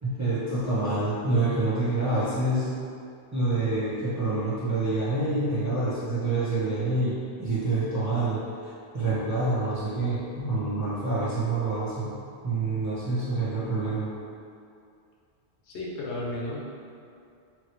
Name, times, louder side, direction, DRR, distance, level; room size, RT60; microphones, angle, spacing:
voice 1, 0.0-2.7 3.3-8.4 8.9-12.1 12.4-14.1, right 2 dB, 20° right, -11 dB, 0.5 m, -27 dB
voice 2, 15.7-16.6, left 1 dB, 80° left, -5 dB, 1.0 m, -33 dB
2.9 x 2.6 x 2.9 m, 2.4 s
omnidirectional pair, 1.1 m